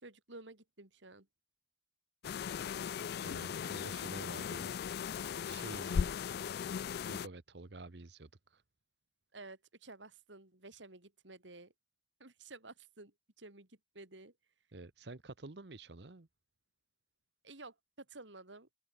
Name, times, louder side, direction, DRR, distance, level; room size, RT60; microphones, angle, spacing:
voice 1, 0.0-1.3 9.3-11.7 12.2-14.3 17.4-18.7, right 2 dB, 80° right, 3.5 m, -53 dB
sound 1, 2.2-7.3, left 7 dB, 55° left, 0.3 m, -37 dB
voice 2, 3.2-4.8 5.4-6.3 6.7-8.6 14.7-16.3, right 2 dB, 65° right, 1.1 m, -49 dB
open air
head